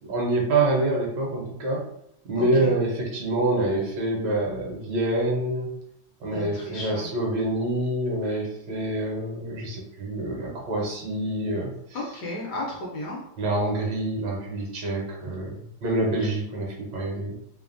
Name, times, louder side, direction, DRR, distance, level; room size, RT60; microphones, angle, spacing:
voice 1, 0.0-1.9 2.2-5.7 6.2-12.1 13.4-17.3, right 2 dB, 70° right, -1 dB, 1.3 m, -26 dB
voice 2, 2.4-2.7 6.3-7.1 11.9-13.2, left 1 dB, 70° left, -3 dB, 1.1 m, -34 dB
3.2 x 2.0 x 2.4 m, 0.77 s
omnidirectional pair, 2.2 m